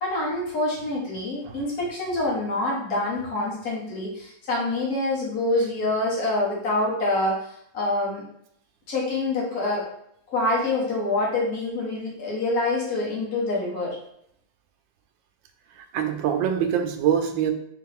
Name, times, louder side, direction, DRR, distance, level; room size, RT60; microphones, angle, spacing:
voice 1, 0.0-7.4 7.7-8.2 8.9-9.9 10.3-14.0, left 2 dB, 55° left, -5 dB, 1.7 m, -26 dB
voice 2, 15.9-17.5, right 9 dB, 85° right, 7 dB, 1.3 m, -24 dB
3.7 x 3.2 x 3.4 m, 0.72 s
omnidirectional pair, 2.0 m